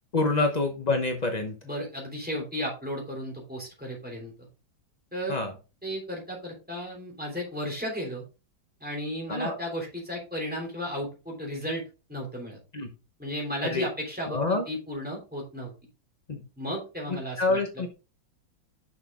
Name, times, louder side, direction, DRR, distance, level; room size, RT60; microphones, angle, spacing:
voice 1, 0.1-1.5 5.3-5.5 9.3-9.6 12.7-12.9 13.7-13.9 14.3-14.6 16.3-16.4 17.1-17.9, left 3 dB, 60° left, 4 dB, 0.4 m, -27 dB
voice 2, 1.6-4.5 5.1-5.4 5.8-8.2 8.8-11.8 12.1-12.6 13.2-15.7 16.6-17.6, equal, 5° right, -1 dB, 3.0 m, -34 dB
6.4 x 6.2 x 3.7 m, 0.32 s
omnidirectional pair, 2.2 m